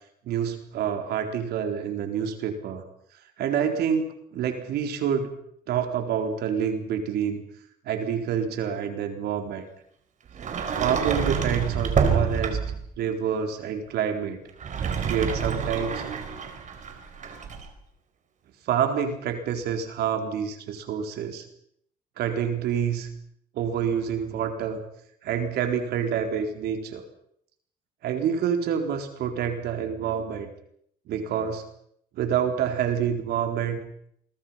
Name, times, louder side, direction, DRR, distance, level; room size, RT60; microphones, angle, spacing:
voice 1, 0.3-2.8 3.4-5.3 5.7-7.4 7.9-9.7 10.8-12.6 13.0-14.4 15.1-16.0 18.7-21.4 22.2-23.1 23.5-24.8 25.2-27.0 28.0-30.5 31.1-31.6 32.2-33.8, right 8 dB, 75° right, 5 dB, 4.1 m, -27 dB
Sliding door, 10.3-12.9 14.5-17.7, right 6 dB, 45° right, 4.7 m, -27 dB
28.5 x 23.0 x 5.8 m, 0.70 s
cardioid pair, 110°, 17 cm